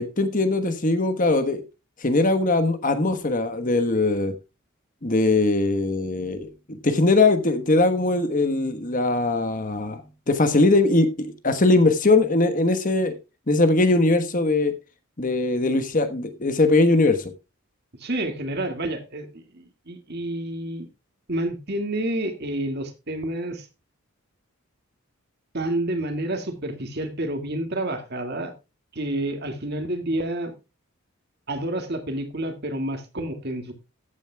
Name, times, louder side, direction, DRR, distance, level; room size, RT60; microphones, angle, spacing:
voice 1, 0.0-1.6 2.0-4.3 5.0-10.0 10.3-13.2 13.5-14.7 15.2-17.3, left 2 dB, 35° left, 1.2 m, -21 dB
voice 2, 18.0-20.9 21.3-23.7 25.5-28.5 28.9-30.5 31.5-33.7, right 1 dB, 45° right, 2.1 m, -29 dB
14.5 x 9.2 x 2.3 m
head